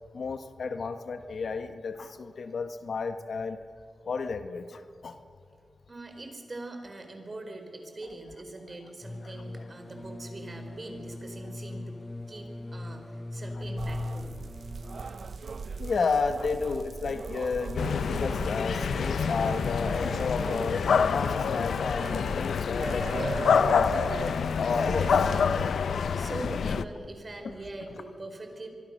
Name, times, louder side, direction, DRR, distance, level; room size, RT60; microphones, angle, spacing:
voice 1, 0.1-3.6 4.1-5.2 15.8-25.4 25.6-25.7 26.6-26.8, left 4 dB, 70° left, 9 dB, 1.2 m, -32 dB
voice 2, 5.9-12.0 12.3-14.3 25.8-28.7, right 2 dB, 40° right, 5 dB, 4.3 m, -42 dB
sound 1, 9.0-15.0, left 2 dB, 20° left, 0.8 m, -39 dB
sound 2, 13.8-25.7, right 5 dB, 65° right, 0.6 m, -39 dB
sound 3, 17.8-26.8, left 6 dB, 90° left, 0.6 m, -27 dB
24.5 x 23.5 x 6.6 m, 2.4 s
cardioid pair, 65°, 0 cm